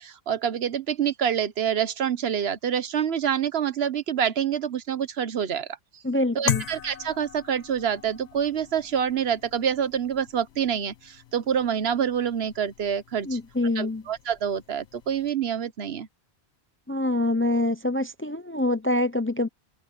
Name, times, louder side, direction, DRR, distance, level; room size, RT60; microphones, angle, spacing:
voice 1, 0.0-5.7 6.3-13.3 13.8-16.1, right 8 dB, 70° right, 1.1 m, -27 dB
voice 2, 6.0-6.6 13.2-14.0 16.9-19.5, left 1 dB, 15° left, 0.5 m, -25 dB
sound 1, 6.5-15.3, left 10 dB, 85° left, 1.1 m, -38 dB
open air
omnidirectional pair, 1.1 m